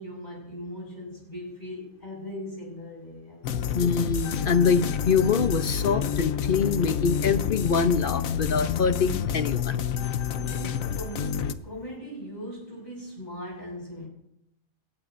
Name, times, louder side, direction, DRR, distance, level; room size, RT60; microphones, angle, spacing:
voice 1, 0.0-3.7 10.5-14.1, equal, 30° left, -3 dB, 6.2 m, -39 dB
sound 1, 3.4-11.5, left 8 dB, 70° left, 1.1 m, -28 dB
voice 2, 3.7-9.8, left 5 dB, 50° left, 11 dB, 0.7 m, -24 dB
20.5 x 18.0 x 2.6 m, 0.80 s
omnidirectional pair, 1.5 m